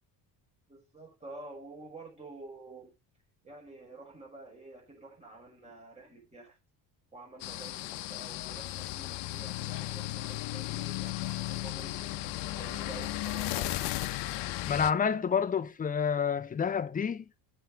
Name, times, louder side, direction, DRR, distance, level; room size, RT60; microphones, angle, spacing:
voice 1, 0.7-2.9 3.4-6.6 7.1-13.9, right 2 dB, 15° right, 5.1 m, -49 dB
sound 1, 7.4-14.9, left 16 dB, 80° left, 0.8 m, -35 dB
voice 2, 14.6-17.3, left 7 dB, 20° left, 0.7 m, -29 dB
7.9 x 4.7 x 7.1 m
cardioid pair, 140°, 41 cm